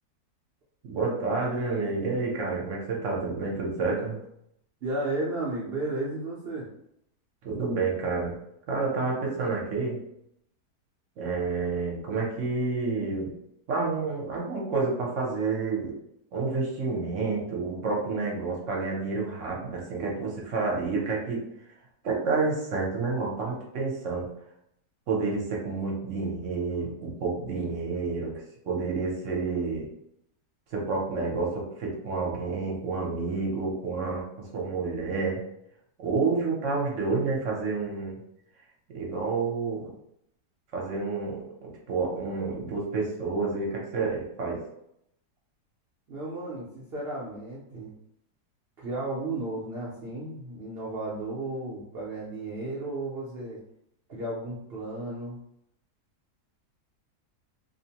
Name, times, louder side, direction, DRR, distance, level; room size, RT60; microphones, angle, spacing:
voice 1, 0.8-4.2 7.4-8.4 8.7-10.0 11.2-13.3 13.7-15.9 16.3-21.4 22.0-24.3 25.1-28.3 28.6-29.8 30.7-34.2 34.5-35.4 36.0-38.2 38.9-39.9 40.7-44.6, right 4 dB, 60° right, -2 dB, 0.9 m, -29 dB
voice 2, 4.8-6.7 46.1-47.9 48.8-53.6 54.1-55.4, right 2 dB, 75° right, -6 dB, 0.5 m, -33 dB
2.8 x 2.1 x 2.8 m, 0.76 s
omnidirectional pair, 1.8 m